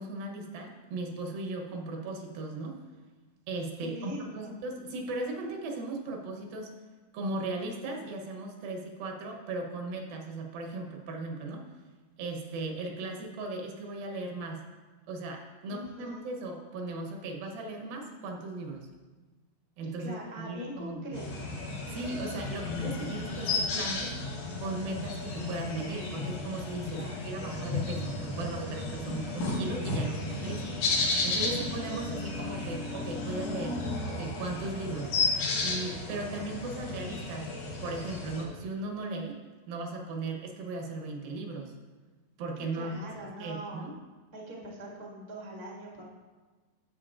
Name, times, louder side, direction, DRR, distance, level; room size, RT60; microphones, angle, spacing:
voice 1, 0.0-2.8 3.5-6.7 7.1-11.7 12.2-14.6 15.1-18.9 19.8-21.2 21.9-24.2 24.6-35.1 35.6-39.4 39.7-41.7 42.4-43.0 43.4-44.0, right 2 dB, 80° right, 2 dB, 2.8 m, -37 dB
voice 2, 3.8-4.6 15.7-16.3 20.0-21.5 26.9-27.2 42.6-43.9 44.3-46.0, equal, 35° right, -4 dB, 0.4 m, -42 dB
sound 1, 21.1-38.4, left 3 dB, 90° left, 3.2 m, -33 dB
12.0 x 7.6 x 2.5 m, 1.3 s
omnidirectional pair, 4.0 m